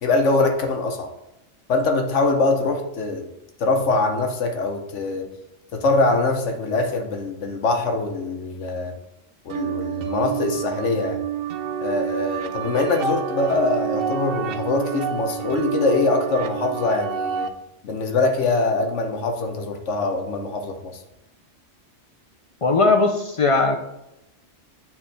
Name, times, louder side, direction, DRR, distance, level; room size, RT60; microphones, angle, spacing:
voice 1, 0.0-1.1 1.7-3.3 3.6-5.3 5.7-8.9 9.4-11.2 11.8-17.5 17.8-21.0, left 3 dB, 70° left, 4 dB, 1.2 m, -23 dB
sound 1, 9.5-17.5, right 7 dB, 60° right, 0.6 m, -28 dB
voice 2, 22.6-23.8, left 3 dB, 55° left, 4 dB, 0.3 m, -18 dB
8.8 x 3.6 x 3.3 m, 0.87 s
omnidirectional pair, 1.3 m